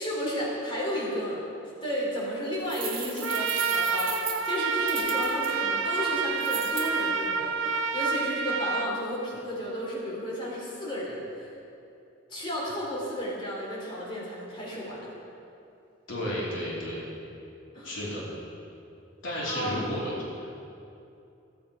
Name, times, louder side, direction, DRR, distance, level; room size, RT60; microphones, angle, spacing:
voice 1, 0.0-1.4 1.8-11.5 12.3-15.1 17.7-18.0 19.5-20.0, equal, 25° left, -6 dB, 3.1 m, -33 dB
sound 1, 2.7-5.5 6.4-6.9, right 6 dB, 25° right, 1.6 m, -36 dB
Trumpet, 3.2-8.9, right 5 dB, 85° right, 0.7 m, -28 dB
voice 2, 16.1-17.0 17.8-18.2 19.2-20.6, left 1 dB, 80° left, -6 dB, 3.1 m, -32 dB
15.0 x 8.6 x 5.0 m, 2.7 s
head